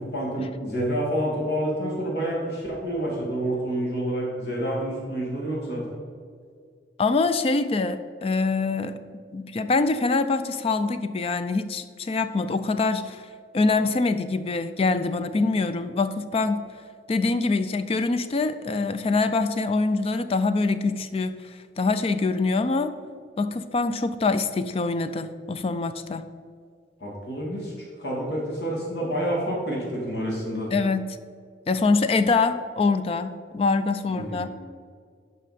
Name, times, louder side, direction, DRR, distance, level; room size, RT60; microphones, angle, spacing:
voice 1, 0.0-6.0 27.0-30.7 34.1-34.5, right 1 dB, 65° left, -3 dB, 2.1 m, -28 dB
voice 2, 7.0-9.0 9.3-13.3 13.5-16.6 17.1-22.9 23.4-26.3 30.7-31.2 31.7-34.5, left 3 dB, 35° left, 11 dB, 0.3 m, -24 dB
11.0 x 5.4 x 4.2 m, 2.1 s
head